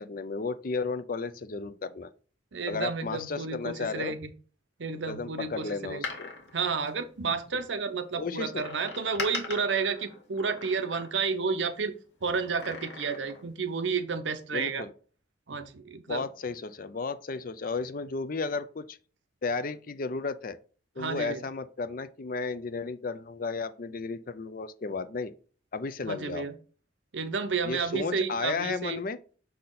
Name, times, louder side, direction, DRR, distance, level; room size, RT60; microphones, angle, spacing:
voice 1, 0.0-2.1 2.7-4.1 5.1-6.3 8.2-8.6 14.5-14.9 16.1-19.0 19.4-20.6 21.0-25.3 25.7-26.5 27.6-29.2, left 4 dB, 50° left, 0.5 m, -33 dB
voice 2, 2.5-4.3 4.8-6.1 6.5-11.9 12.2-14.9 15.5-16.2 21.0-21.4 26.0-26.5 27.1-29.0, right 5 dB, 75° right, 0.8 m, -31 dB
Door, 5.8-7.6 8.6-11.5 12.4-13.5 13.8-13.9, left 4 dB, 65° left, 1.8 m, -41 dB
6.5 x 4.2 x 3.9 m
head